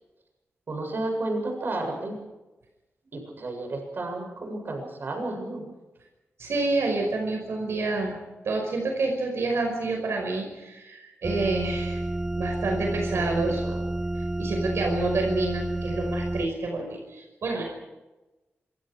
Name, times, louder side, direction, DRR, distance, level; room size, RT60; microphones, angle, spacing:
voice 1, 0.7-2.2 3.1-5.7 13.1-13.3 13.7-13.8, right 2 dB, 50° right, 3 dB, 7.5 m, -32 dB
voice 2, 6.4-8.1 8.4-12.0 12.3-13.6 14.2-17.6, right 2 dB, 70° right, 2 dB, 5.5 m, -28 dB
sound 1, 11.2-16.5, right 1 dB, 10° right, 0.7 m, -30 dB
27.0 x 26.5 x 4.9 m, 1.1 s
wide cardioid pair, 155°, 5 cm